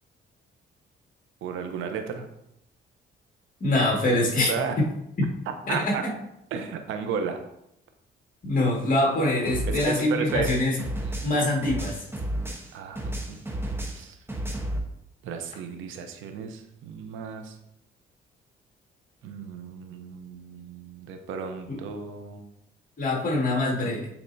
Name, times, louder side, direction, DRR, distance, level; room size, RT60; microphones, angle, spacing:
voice 1, 1.4-2.3 4.5-4.8 5.7-6.0 6.5-7.4 9.7-10.5 11.0-11.5 12.7-13.4 13.9-14.2 15.2-17.6 19.2-22.4, right 6 dB, 90° right, 6 dB, 0.9 m, -34 dB
voice 2, 3.6-4.9 5.2-5.3 5.7-6.0 8.4-10.8 11.2-12.0 21.7-21.8 23.0-24.0, left 1 dB, 45° left, -1 dB, 2.1 m, -24 dB
sound 1, 9.5-12.7 13.0-14.8, right 1 dB, 10° right, 1.1 m, -32 dB
8.7 x 4.3 x 2.8 m, 0.81 s
cardioid pair, 90°, 20 cm